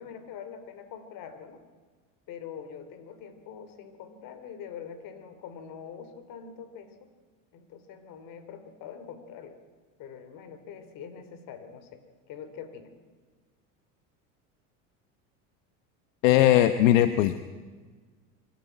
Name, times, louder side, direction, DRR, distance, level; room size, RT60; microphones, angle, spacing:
voice 1, 0.0-1.6 2.3-7.1 7.5-9.5 10.0-12.0 12.3-12.9, left 7 dB, 55° left, 10 dB, 3.0 m, -44 dB
voice 2, 16.2-17.4, left 13 dB, 80° left, 11 dB, 1.0 m, -20 dB
25.5 x 12.0 x 9.1 m, 1.4 s
supercardioid pair, 105°, 38 cm